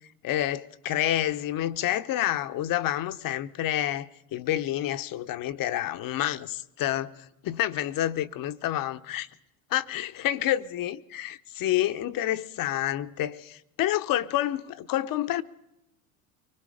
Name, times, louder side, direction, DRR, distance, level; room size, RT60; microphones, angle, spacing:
voice 1, 0.2-7.2 7.4-9.3 9.7-15.4, left 13 dB, 50° left, 1.0 m, -28 dB
24.0 x 21.5 x 5.0 m
hypercardioid pair, 80°, 44 cm